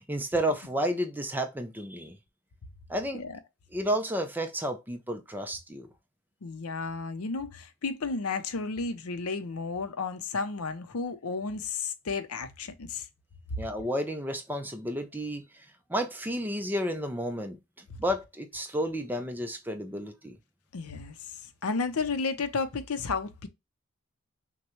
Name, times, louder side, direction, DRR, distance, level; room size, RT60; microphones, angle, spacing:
voice 1, 0.0-2.2 2.9-3.2 3.7-5.9 13.6-15.6 15.9-17.6 18.0-20.4, equal, 10° right, 0.5 m, -31 dB
voice 2, 6.4-13.1 20.7-21.3 21.6-23.5, left 4 dB, 90° left, 0.7 m, -32 dB
6.0 x 2.2 x 3.0 m
head